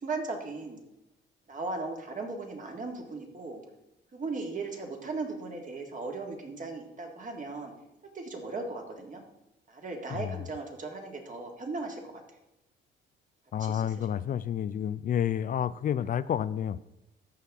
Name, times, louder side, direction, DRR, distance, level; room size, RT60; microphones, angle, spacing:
voice 1, 0.0-0.8 1.5-3.6 4.1-7.7 8.1-9.2 9.7-12.2 13.5-14.1, right 3 dB, 40° right, 2 dB, 1.9 m, -37 dB
voice 2, 10.1-10.4 13.5-16.8, left 9 dB, 45° left, 16 dB, 0.4 m, -30 dB
14.0 x 5.7 x 3.6 m, 0.93 s
cardioid pair, 90°, 20 cm